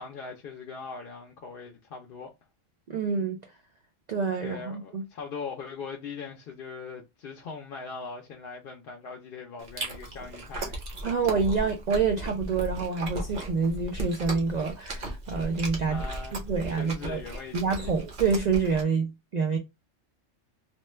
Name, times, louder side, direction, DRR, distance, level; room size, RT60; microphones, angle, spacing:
voice 1, 0.0-2.3 4.4-10.8 15.9-18.0, left 5 dB, 55° left, 0.7 m, -41 dB
voice 2, 2.9-3.5 4.1-5.0 11.0-16.0 16.3-17.2 17.5-19.6, right 5 dB, 75° right, 0.3 m, -27 dB
Chewing mastication, 9.6-18.8, right 1 dB, 45° right, 0.9 m, -36 dB
2.9 x 2.1 x 3.1 m
omnidirectional pair, 1.3 m